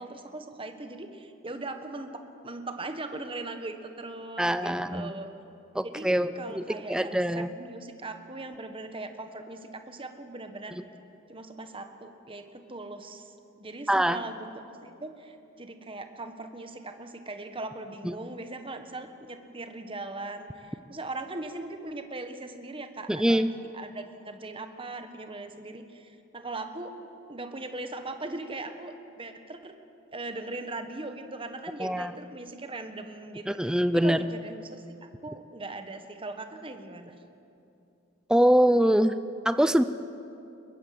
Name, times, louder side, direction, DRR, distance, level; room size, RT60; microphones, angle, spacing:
voice 1, 0.0-5.3 5.8-10.8 11.3-26.9 27.3-29.7 30.1-37.2, right 2 dB, 25° right, 7 dB, 1.4 m, -40 dB
voice 2, 4.4-5.1 5.7-6.6 6.9-7.5 13.9-14.2 18.0-18.1 23.1-23.5 31.8-32.1 33.5-34.2 38.3-39.1 39.5-39.8, equal, 5° right, 12 dB, 0.5 m, -23 dB
21.5 x 21.5 x 7.7 m, 2.7 s
head